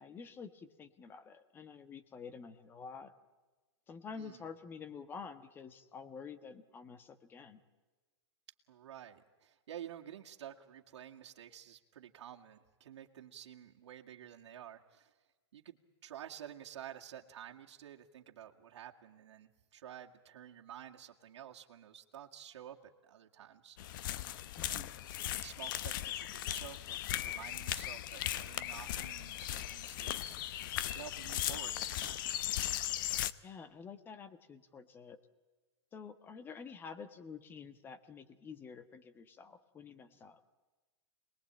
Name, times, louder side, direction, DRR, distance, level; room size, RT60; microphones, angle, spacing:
voice 1, 0.0-3.1 3.9-7.6 24.5-25.0 33.4-35.2 35.9-40.4, left 5 dB, 15° left, 12 dB, 1.3 m, -49 dB
voice 2, 4.1-4.5 8.7-15.1 15.5-22.8 23.0-24.0 24.7-32.2, right 10 dB, 75° right, 1 dB, 2.1 m, -51 dB
sound 1, 23.8-33.3, left 12 dB, 45° left, 0.9 m, -38 dB
28.0 x 20.5 x 8.9 m, 1.3 s
supercardioid pair, 165°, 15 cm